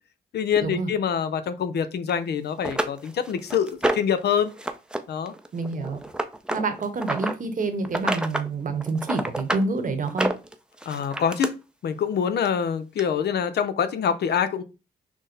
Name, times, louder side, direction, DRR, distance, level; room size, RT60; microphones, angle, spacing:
voice 1, 0.3-4.5 5.1-5.3 10.9-11.5 11.8-14.6, left 7 dB, 75° left, 0.6 m, -25 dB
sound 1, 2.1-2.2 2.6-4.2 4.6-5.0 5.3-7.3 7.8-8.5 8.8-9.7 10.1-11.5 12.5-12.6 13.0-13.1, right 1 dB, 5° right, 0.5 m, -28 dB
voice 2, 5.5-6.0 6.5-10.3, right 3 dB, 50° right, 1.0 m, -27 dB
6.0 x 2.0 x 3.9 m
cardioid pair, 90°, 17 cm